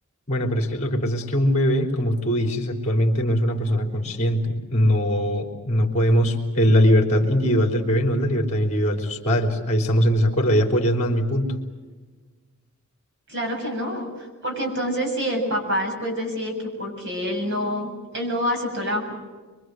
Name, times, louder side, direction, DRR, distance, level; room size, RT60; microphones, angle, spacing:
voice 1, 0.3-11.6, equal, 30° left, 2 dB, 3.6 m, -21 dB
voice 2, 13.3-19.1, equal, 55° right, 3 dB, 7.3 m, -27 dB
25.0 x 24.5 x 7.8 m, 1.4 s
head